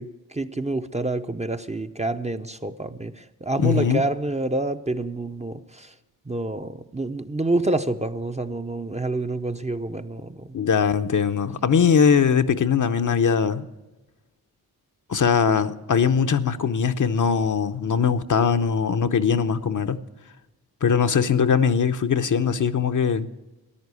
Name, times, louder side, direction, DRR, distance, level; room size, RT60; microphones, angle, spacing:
voice 1, 0.0-5.9 6.3-10.5, right 2 dB, 20° right, 0.7 m, -28 dB
voice 2, 3.6-4.0 10.5-13.7 15.1-20.0 20.8-23.3, left 6 dB, 50° left, 0.8 m, -21 dB
14.0 x 10.5 x 8.3 m
cardioid pair, 80°, 38 cm